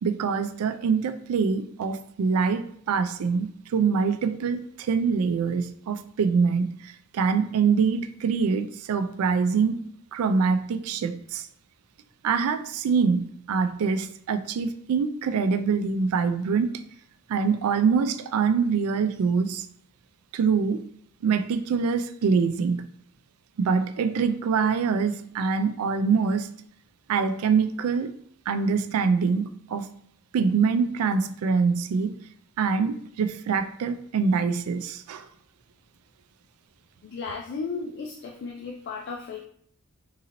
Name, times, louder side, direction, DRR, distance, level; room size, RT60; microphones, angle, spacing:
voice 1, 0.0-11.5 12.2-16.8 17.3-19.7 20.3-20.8 21.2-22.8 23.6-26.5 27.1-28.1 28.5-29.9 30.3-32.1 32.6-35.3, right 5 dB, 75° right, 0.3 m, -24 dB
voice 2, 37.1-39.5, left 4 dB, 50° left, 0.3 m, -34 dB
3.8 x 2.6 x 2.9 m
head